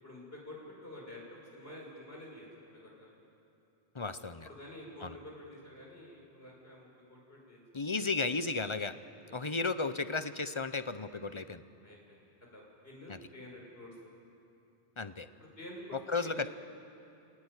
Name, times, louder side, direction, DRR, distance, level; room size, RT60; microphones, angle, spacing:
voice 1, 0.0-3.1 4.4-7.6 9.3-9.4 11.8-12.2 12.5-13.9 15.4-16.5, left 1 dB, 65° left, -2 dB, 6.3 m, -49 dB
voice 2, 3.9-4.5 5.0-5.2 7.7-8.9 9.3-11.6 13.1-13.2 15.0-15.3 15.9-16.5, left 3 dB, 30° left, 12 dB, 0.8 m, -34 dB
29.0 x 18.5 x 9.9 m, 2.8 s
omnidirectional pair, 1.1 m